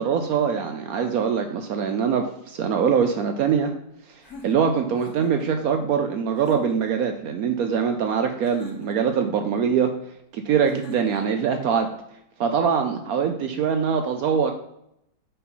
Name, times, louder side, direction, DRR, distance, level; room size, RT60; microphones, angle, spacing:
voice 1, 0.0-3.7 4.4-9.9 10.3-11.9 12.4-14.5, right 7 dB, 75° right, 5 dB, 0.8 m, -23 dB
sound 1, 4.2-5.5 6.3-7.0 8.4-9.2 10.6-11.4, left 4 dB, 55° left, 1.6 m, -43 dB
5.5 x 4.3 x 5.4 m, 0.80 s
omnidirectional pair, 2.0 m